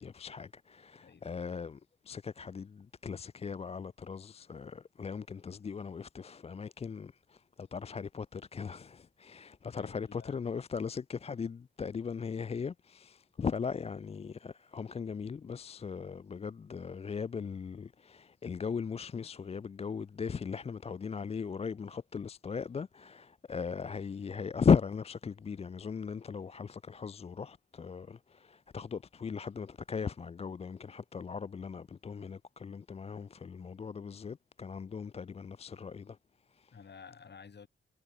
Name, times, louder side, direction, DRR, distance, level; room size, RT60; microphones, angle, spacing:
voice 1, 0.0-36.2 36.5-36.7, left 6 dB, 30° left, 0.4 m, -37 dB
voice 2, 1.0-1.3 9.8-10.4 36.7-37.7, left 6 dB, 55° left, 3.8 m, -52 dB
cardioid pair, 70°, 21 cm